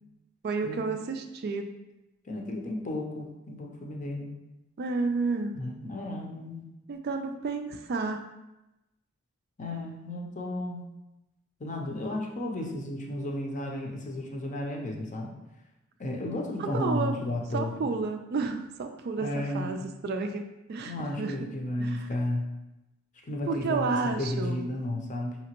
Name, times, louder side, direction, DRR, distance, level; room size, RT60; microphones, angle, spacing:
voice 1, 0.4-1.7 4.8-5.6 6.9-8.2 16.6-17.1 17.5-20.4 20.7-21.5 21.8-22.1 23.5-24.6, right 4 dB, 50° right, 6 dB, 0.3 m, -31 dB
voice 2, 2.3-4.3 5.5-6.7 9.6-10.9 11.6-15.3 16.0-17.7 19.2-19.8 20.8-22.5 23.3-25.4, left 1 dB, 35° left, 1 dB, 0.6 m, -33 dB
5.1 x 2.9 x 2.9 m, 0.94 s
head